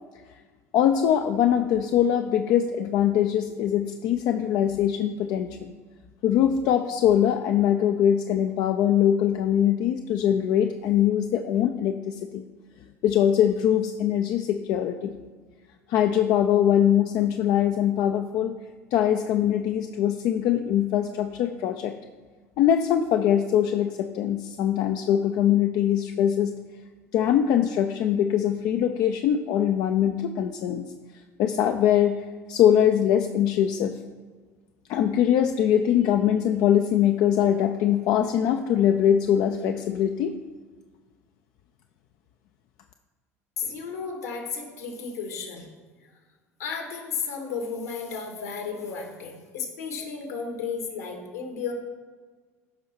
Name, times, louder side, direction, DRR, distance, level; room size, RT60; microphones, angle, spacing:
voice 1, 0.7-5.7 6.2-12.4 13.0-15.1 15.9-18.5 18.9-21.9 22.6-26.5 27.1-30.8 31.4-32.2 32.5-33.9 34.9-40.3, left 10 dB, 50° left, 6 dB, 0.5 m, -22 dB
voice 2, 43.6-45.7 46.6-51.7, left 5 dB, 75° left, 3 dB, 2.0 m, -33 dB
13.5 x 5.5 x 4.6 m, 1.4 s
figure-of-eight pair, 65°, 8 cm